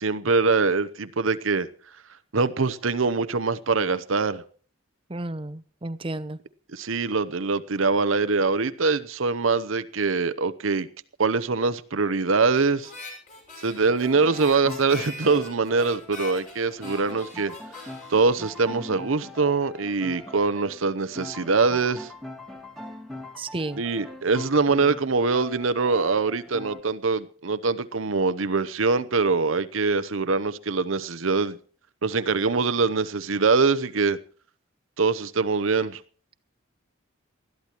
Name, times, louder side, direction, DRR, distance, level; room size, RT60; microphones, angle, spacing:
voice 1, 0.0-1.7 2.3-4.4 6.7-10.9 11.2-12.9 13.6-17.5 18.1-22.1 23.8-31.6 32.0-34.2 35.0-36.0, right 4 dB, 75° right, 0.8 m, -23 dB
voice 2, 5.1-6.4 23.4-23.8, right 2 dB, 25° right, 0.8 m, -32 dB
Harmonica, 12.8-19.3, left 2 dB, 40° left, 5.9 m, -43 dB
sound 1, 13.9-26.8, left 1 dB, ahead, 2.0 m, -42 dB
20.0 x 13.5 x 3.0 m
head